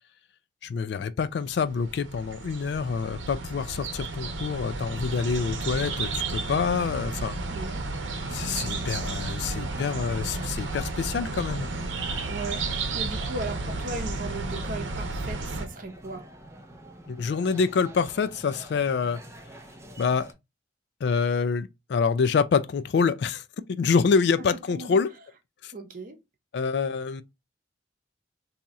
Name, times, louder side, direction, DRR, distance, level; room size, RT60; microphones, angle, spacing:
voice 1, 0.6-7.4 8.3-11.7 17.1-19.2 20.0-20.3 21.0-23.4 23.7-25.1 25.6-25.7 26.5-27.2, left 5 dB, 65° left, 0.3 m, -26 dB
sound 1, 1.5-15.7, right 3 dB, 85° right, 0.7 m, -32 dB
sound 2, 5.1-20.3, right 1 dB, 15° right, 0.5 m, -47 dB
voice 2, 7.5-7.8 12.2-16.2 24.5-25.0 25.7-26.2, right 2 dB, 50° right, 0.7 m, -37 dB
2.8 x 2.3 x 4.0 m
head